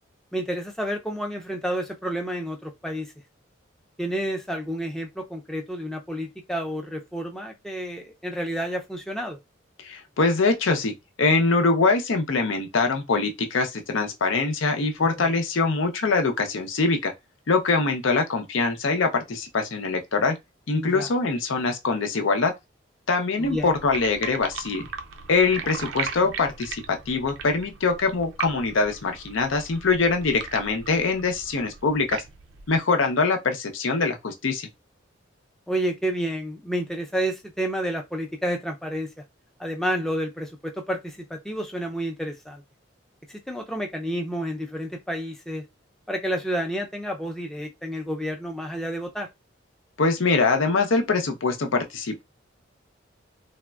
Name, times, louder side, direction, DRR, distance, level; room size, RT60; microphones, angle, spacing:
voice 1, 0.3-3.1 4.0-9.4 15.0-15.1 20.7-21.1 23.4-23.7 35.7-39.1 39.6-42.6 43.3-45.6 46.1-49.3, equal, ahead, 0.4 m, -30 dB
voice 2, 9.8-10.9 11.2-17.1 17.5-20.4 20.7-22.5 23.1-24.9 25.3-32.2 32.7-34.7 50.0-52.2, left 4 dB, 80° left, 0.6 m, -23 dB
sound 1, 23.4-32.8, right 6 dB, 80° right, 0.5 m, -38 dB
3.4 x 2.1 x 2.3 m
head